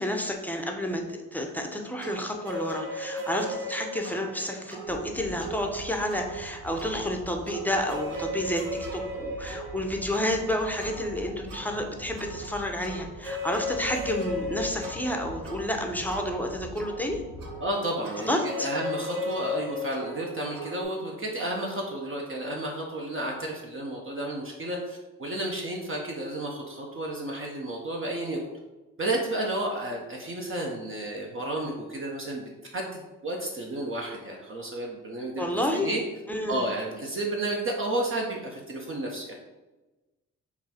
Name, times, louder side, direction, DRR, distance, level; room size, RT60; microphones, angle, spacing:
voice 1, 0.0-8.6 8.9-17.2 18.3-18.7 35.4-35.9 36.3-36.7, left 1 dB, 5° left, 2 dB, 0.7 m, -30 dB
sound 1, 2.0-20.8, left 1 dB, 75° right, 0.9 m, -37 dB
sound 2, 4.8-17.6, equal, 90° left, 0.7 m, -44 dB
voice 2, 17.6-28.4 29.0-36.0 36.5-39.3, right 1 dB, 35° right, -1 dB, 0.8 m, -32 dB
4.0 x 2.3 x 4.2 m, 1.1 s
supercardioid pair, 55°, 35 cm